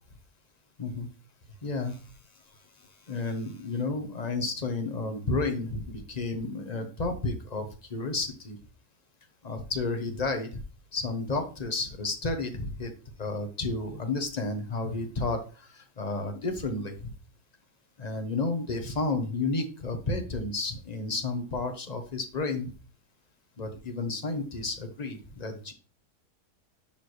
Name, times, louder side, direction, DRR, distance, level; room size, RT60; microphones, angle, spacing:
voice 1, 1.6-2.0 3.1-8.6 9.4-10.6 10.9-12.9 13.2-17.1 18.0-22.7 23.6-25.7, left 3 dB, 30° left, 6 dB, 0.9 m, -31 dB
10.5 x 4.8 x 3.2 m, 0.37 s
omnidirectional pair, 1.9 m